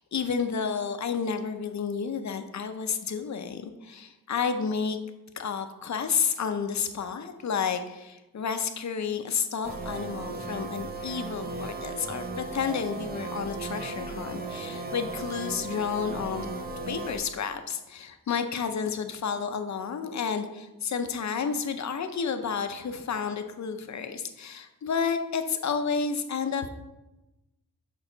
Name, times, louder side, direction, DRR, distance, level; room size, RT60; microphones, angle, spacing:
voice 1, 0.0-5.0 5.3-16.5 16.9-26.7, left 6 dB, 50° left, 8 dB, 0.6 m, -31 dB
ufo ambience normalized, 9.6-17.2, right 3 dB, 25° right, 0.7 m, -36 dB
6.4 x 5.8 x 3.9 m, 1.0 s
wide cardioid pair, 160°, 35 cm